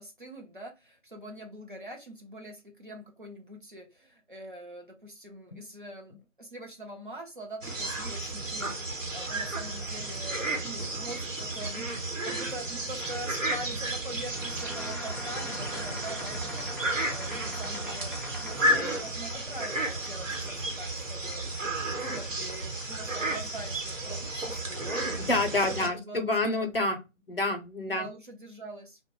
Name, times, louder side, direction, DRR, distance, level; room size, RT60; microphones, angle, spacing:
voice 1, 0.0-21.6 21.9-25.1 25.7-26.7 27.9-29.0, right 1 dB, 40° right, 0.6 m, -44 dB
sound 1, 7.6-25.9, right 1 dB, 85° right, 1.1 m, -33 dB
sound 2, 14.3-19.3, left 1 dB, ahead, 0.4 m, -42 dB
voice 2, 25.2-27.0 27.3-28.1, left 2 dB, 50° left, 0.6 m, -28 dB
2.7 x 2.1 x 3.0 m
figure-of-eight pair, 165°, 38 cm